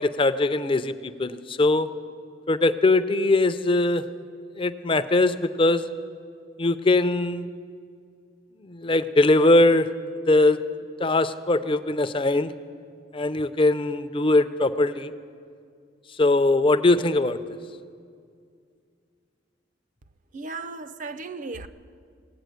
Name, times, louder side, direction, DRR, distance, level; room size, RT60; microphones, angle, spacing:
voice 1, 0.0-1.9 2.5-4.0 4.6-5.9 6.6-7.5 8.7-9.9 10.3-10.6 11.0-12.5 13.1-15.1 16.2-17.4, left 2 dB, 30° left, 0.5 m, -21 dB
voice 2, 20.3-21.7, right 3 dB, 45° right, 0.6 m, -35 dB
17.5 x 8.7 x 9.2 m
head